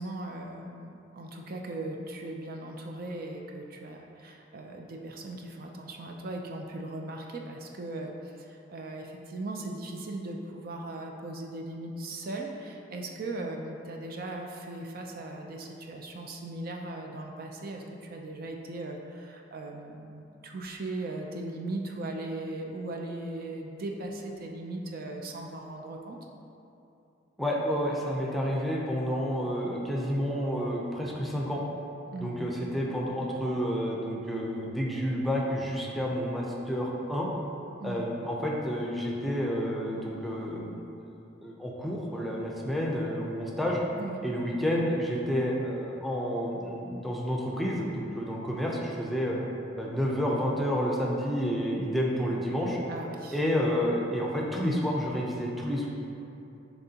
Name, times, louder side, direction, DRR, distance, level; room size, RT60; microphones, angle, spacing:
voice 1, 0.0-26.2 32.1-32.5 37.8-38.1 44.0-44.3 52.9-53.4, right 2 dB, 50° right, 1 dB, 0.5 m, -38 dB
voice 2, 27.4-31.6 32.2-37.3 37.8-40.8 41.4-43.8 44.2-49.4 49.8-52.8 53.3-55.9, equal, ahead, -3 dB, 0.6 m, -30 dB
10.5 x 3.5 x 2.8 m, 2.8 s
head